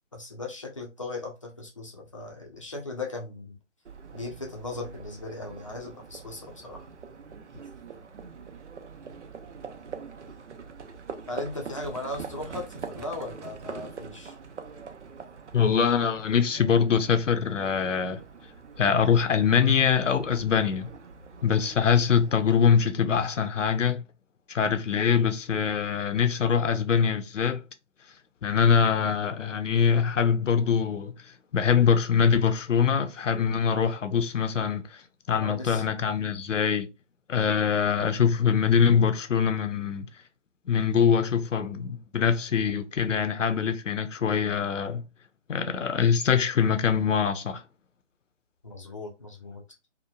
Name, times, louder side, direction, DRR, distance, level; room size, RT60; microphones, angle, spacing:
voice 1, 0.1-3.6 4.1-6.9 11.3-14.4 35.4-35.9 48.6-49.6, left 2 dB, 25° left, 0.5 m, -37 dB
Livestock farm animals working animals, 3.9-22.8, right 5 dB, 70° right, 0.6 m, -44 dB
voice 2, 15.5-18.2 18.8-20.9 21.4-24.0 24.5-27.6 28.4-31.1 31.5-35.0 35.3-36.9 37.3-40.1 40.7-45.0 45.5-47.6, left 7 dB, 80° left, 0.6 m, -23 dB
2.9 x 2.1 x 2.2 m
figure-of-eight pair, 145°, 37 cm